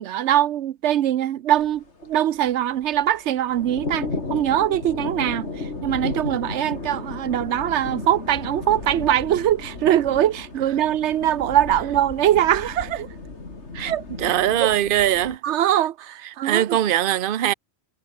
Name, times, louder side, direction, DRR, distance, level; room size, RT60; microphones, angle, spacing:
voice 1, 0.0-5.5 5.8-13.1 13.8-14.7 15.4-16.8, right 11 dB, 90° right, 1.0 m, -22 dB
sound 1, 1.5-15.4, left 3 dB, 85° left, 3.3 m, -34 dB
voice 2, 14.2-15.4 16.4-17.5, right 12 dB, 55° right, 0.8 m, -21 dB
omnidirectional pair, 1.1 m